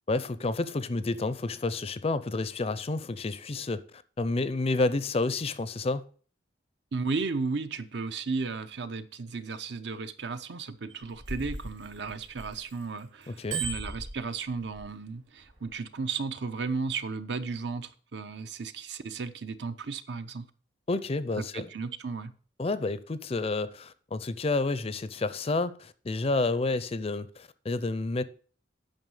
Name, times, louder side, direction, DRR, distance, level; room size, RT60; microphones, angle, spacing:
voice 1, 0.1-6.0 13.3-13.6 20.9-21.7 22.6-28.2, left 3 dB, 30° left, 0.5 m, -30 dB
voice 2, 6.9-20.5 21.4-22.3, right 4 dB, 65° right, 0.7 m, -34 dB
Bicycle bell, 10.9-12.8 13.2-14.9 15.5-15.7, right 4 dB, 85° right, 3.2 m, -37 dB
9.1 x 5.5 x 5.5 m
head